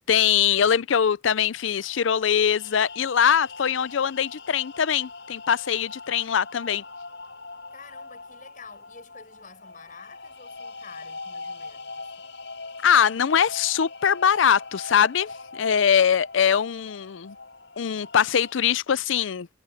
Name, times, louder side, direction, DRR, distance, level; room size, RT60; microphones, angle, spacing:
voice 1, 0.0-6.8 12.8-17.4 17.8-19.5, left 8 dB, 85° left, 0.5 m, -22 dB
sound 1, 1.4-18.7, left 3 dB, 65° left, 6.4 m, -42 dB
voice 2, 6.6-7.1 7.7-12.3, left 5 dB, 45° left, 7.5 m, -49 dB
head